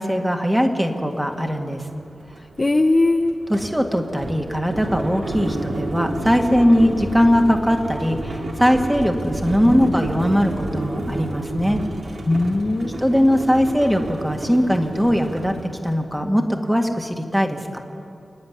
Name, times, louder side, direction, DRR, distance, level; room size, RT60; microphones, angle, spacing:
voice 1, 0.0-1.8 3.5-11.8 13.0-15.6 15.8-17.8, equal, 5° right, 3 dB, 1.9 m, -20 dB
sound 1, 0.8-0.9 1.3-16.0, right 1 dB, 65° right, 3.1 m, -31 dB
voice 2, 2.6-3.3 9.7-10.0 12.3-13.2, left 2 dB, 30° left, 5 dB, 0.8 m, -20 dB
29.5 x 10.5 x 9.9 m, 2.8 s
wide cardioid pair, 125°, 0 cm